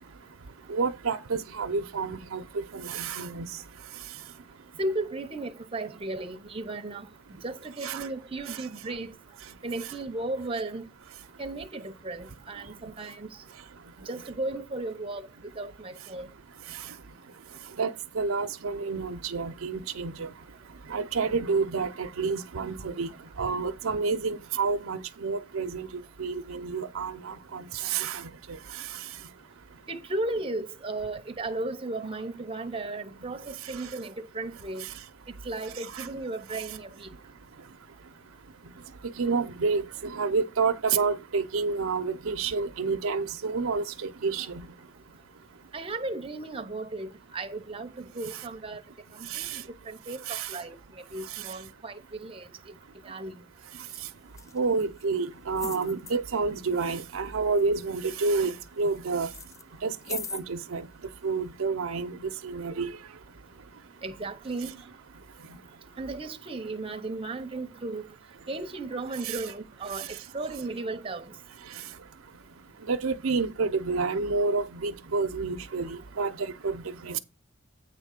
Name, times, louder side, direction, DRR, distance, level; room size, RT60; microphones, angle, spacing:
voice 1, 0.7-3.5 7.8-8.1 17.8-20.3 20.9-23.1 23.4-25.9 26.2-28.3 35.9-36.1 39.2-44.7 49.3-49.6 50.3-50.5 54.5-59.3 59.8-60.9 61.2-62.9 69.2-69.4 72.9-77.2, right 4 dB, 80° right, 0.6 m, -29 dB
voice 2, 4.8-7.1 7.4-9.1 9.6-10.9 11.4-13.4 14.0-15.3 15.6-16.3 29.9-34.9 35.4-37.1 45.7-48.8 49.1-52.8 53.0-53.4 64.0-64.7 66.0-68.1 68.5-71.3, right 2 dB, 25° right, 0.7 m, -35 dB
sound 1, 53.9-54.0 54.3-55.1 55.5-56.1 56.8-57.3 57.5-59.0 59.3-60.4 61.2-61.3, left 5 dB, 15° left, 0.3 m, -41 dB
8.8 x 3.7 x 6.5 m
head